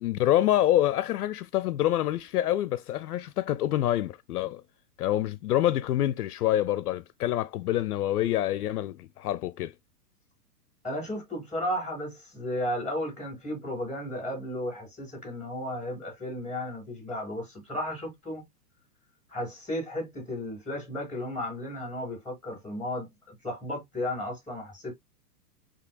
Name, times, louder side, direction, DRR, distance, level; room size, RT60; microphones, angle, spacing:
voice 1, 0.0-4.6 5.0-9.7, left 13 dB, 65° left, 0.5 m, -26 dB
voice 2, 10.8-18.4 19.3-25.0, left 1 dB, ahead, 4.4 m, -34 dB
8.4 x 2.9 x 2.2 m
supercardioid pair, 170°, 48 cm